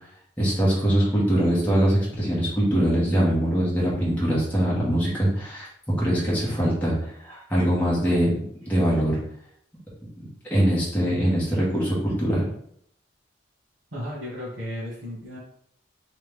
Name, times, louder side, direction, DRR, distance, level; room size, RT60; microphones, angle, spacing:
voice 1, 0.4-5.7 6.0-8.3 8.7-9.2 10.5-12.4, right 1 dB, 10° left, -8 dB, 1.4 m, -22 dB
voice 2, 13.9-15.4, equal, 90° right, -7 dB, 1.3 m, -34 dB
3.3 x 3.3 x 3.5 m, 0.68 s
head